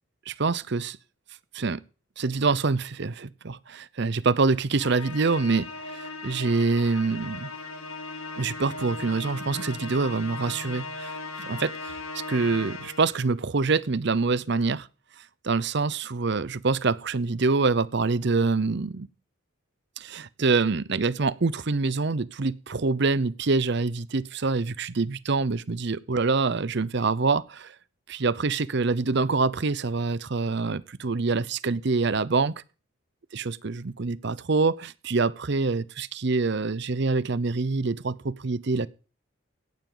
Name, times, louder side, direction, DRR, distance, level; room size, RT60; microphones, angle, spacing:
voice 1, 0.3-1.0 1.5-1.8 2.2-7.5 8.4-14.9 15.2-19.1 20.0-27.7 28.1-32.5 33.3-38.9, right 4 dB, 55° right, 0.6 m, -26 dB
Musical instrument, 4.8-13.3, left 3 dB, 80° left, 2.2 m, -38 dB
17.0 x 12.0 x 3.9 m
head